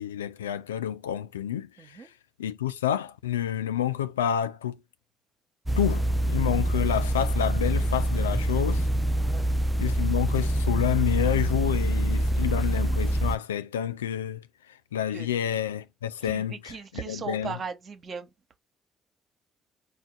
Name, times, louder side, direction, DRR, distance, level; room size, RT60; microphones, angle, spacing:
voice 1, 0.0-2.1 2.4-4.8 5.8-8.9 9.8-17.6, left 10 dB, 80° left, 0.3 m, -29 dB
voice 2, 1.8-2.1 9.2-9.4 15.1-15.3 16.3-18.3, right 5 dB, 45° right, 1.0 m, -38 dB
sound 1, 5.7-13.4, right 1 dB, 10° right, 0.4 m, -25 dB
4.6 x 2.4 x 3.8 m
figure-of-eight pair, 45°, 0 cm